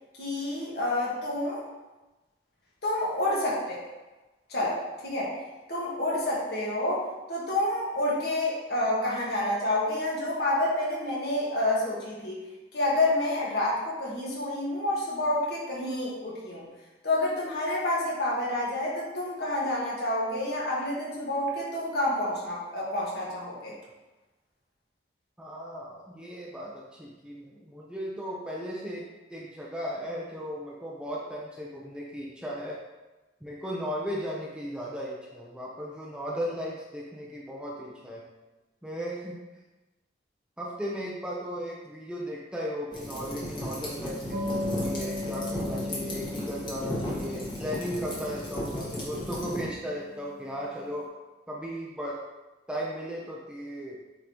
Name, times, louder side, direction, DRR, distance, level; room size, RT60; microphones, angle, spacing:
voice 1, 0.2-1.6 2.8-3.9 4.5-5.3 5.7-7.0 7.3-12.4 12.7-16.7 17.0-23.8, left 1 dB, 60° left, -5 dB, 1.7 m, -28 dB
voice 2, 25.4-29.0 29.3-32.8 33.4-38.2 38.8-39.3 40.6-51.0 51.5-52.2 52.7-54.0, equal, 5° right, -5 dB, 0.7 m, -36 dB
sound 1, 42.9-49.6, equal, 25° left, 1.4 m, -35 dB
Metal stick hit long sustain, 44.3-50.5, left 2 dB, 45° right, 1.6 m, -37 dB
8.5 x 3.8 x 3.0 m, 1.1 s
head